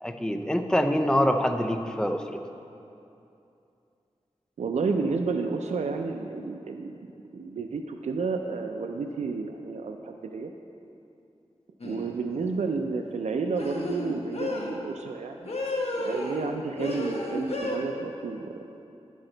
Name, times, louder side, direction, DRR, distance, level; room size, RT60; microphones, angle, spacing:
voice 1, 0.0-2.2, equal, 5° left, 5 dB, 0.5 m, -25 dB
voice 2, 4.6-7.0 7.3-10.5 11.8-15.5 16.0-18.6, right 4 dB, 80° right, 4 dB, 0.4 m, -31 dB
sound 1, 11.8-12.1 13.6-14.7 15.5-16.5 16.8-17.8, left 1 dB, 60° left, 1.0 m, -31 dB
9.8 x 6.2 x 3.8 m, 2.7 s
wide cardioid pair, 80°, 11 cm